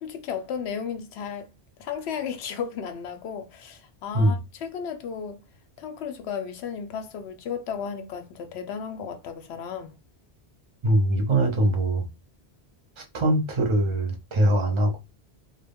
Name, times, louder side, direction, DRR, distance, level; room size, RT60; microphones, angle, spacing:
voice 1, 0.0-1.5 1.8-5.4 5.8-9.9, left 7 dB, 85° left, 0.8 m, -34 dB
voice 2, 10.8-12.0 13.0-15.0, right 1 dB, 35° right, 0.5 m, -22 dB
2.2 x 2.1 x 3.4 m
omnidirectional pair, 1.1 m